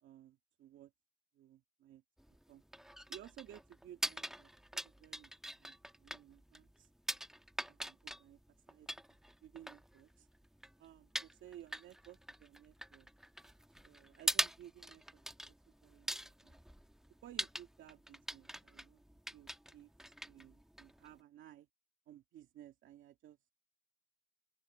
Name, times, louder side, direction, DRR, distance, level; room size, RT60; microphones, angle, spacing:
voice 1, 0.0-0.9 1.3-2.0 2.5-2.6 3.1-6.9 7.7-8.4 8.7-8.9 9.4-10.3 10.8-13.1 13.8-15.2 15.7-16.6 17.2-19.0 19.3-19.9 20.3-21.7 22.1-23.5, right 12 dB, 80° right, 2.1 m, -57 dB
sound 1, 2.2-21.2, equal, ahead, 1.3 m, -44 dB
open air
cardioid pair, 90°, 20 cm